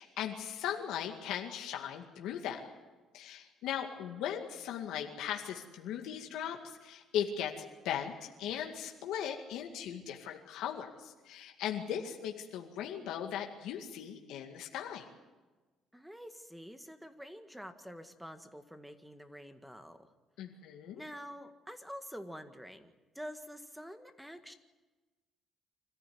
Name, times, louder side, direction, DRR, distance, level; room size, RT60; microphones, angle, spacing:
voice 1, 0.0-2.6 3.1-7.5 7.8-15.0 20.4-21.0, left 9 dB, 85° left, 2 dB, 2.1 m, -38 dB
voice 2, 15.9-20.1 21.0-24.5, equal, 5° right, 8 dB, 1.8 m, -47 dB
25.5 x 14.5 x 9.6 m, 1.2 s
cardioid pair, 115°, 0 cm